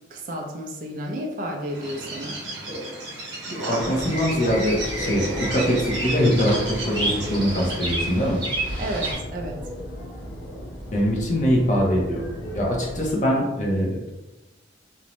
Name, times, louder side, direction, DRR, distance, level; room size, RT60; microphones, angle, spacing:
voice 1, 0.1-2.4 8.8-9.6, equal, 45° right, 0 dB, 0.3 m, -32 dB
Bird, 1.7-8.3, right 1 dB, 75° right, 0.8 m, -33 dB
voice 2, 3.7-8.4 10.9-12.2 12.5-14.1, equal, 40° left, -2 dB, 0.6 m, -23 dB
sound 1, 3.8-13.1, equal, 80° left, 0.9 m, -36 dB
Bird vocalization bird call bird song, 4.0-9.1, right 1 dB, 30° right, 0.8 m, -31 dB
2.6 x 2.1 x 2.9 m, 1.0 s
head